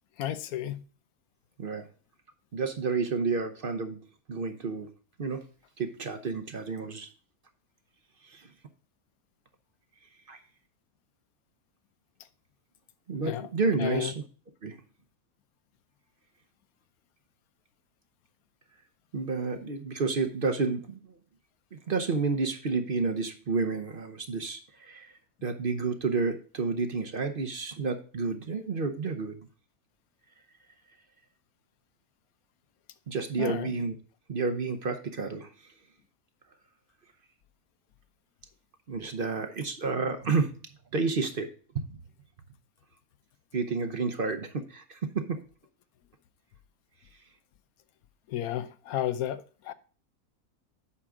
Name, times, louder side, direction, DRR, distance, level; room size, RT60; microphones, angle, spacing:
voice 1, 0.2-0.8 13.2-13.5 13.8-14.1 33.4-33.7 48.3-49.7, left 11 dB, 85° left, 1.1 m, -32 dB
voice 2, 2.5-4.0 4.3-4.9 5.2-5.4 5.8-7.1 8.2-8.5 10.3-10.4 13.1-14.1 14.6-14.8 19.1-21.0 21.7-29.4 33.1-33.9 34.3-35.5 38.9-40.6 40.9-41.5 43.5-45.4, right 4 dB, 45° right, 0.9 m, -30 dB
8.5 x 6.1 x 3.7 m
omnidirectional pair, 1.5 m